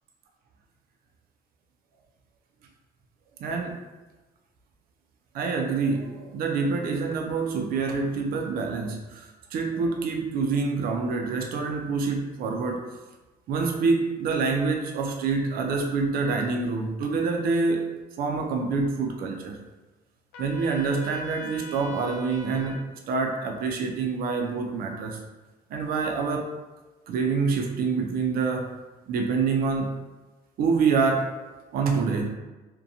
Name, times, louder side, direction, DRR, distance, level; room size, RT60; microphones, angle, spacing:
voice 1, 3.4-3.8 5.3-12.8 13.5-17.8 18.2-19.6 20.4-22.8 23.1-25.2 25.7-26.5 27.1-28.7 29.1-29.9 30.6-31.3 31.7-32.3, right 4 dB, 60° right, 1 dB, 0.4 m, -26 dB
Trumpet, 20.3-22.8, left 3 dB, 90° left, 0.5 m, -42 dB
2.7 x 2.2 x 2.6 m, 1.2 s
cardioid pair, 110°, 17 cm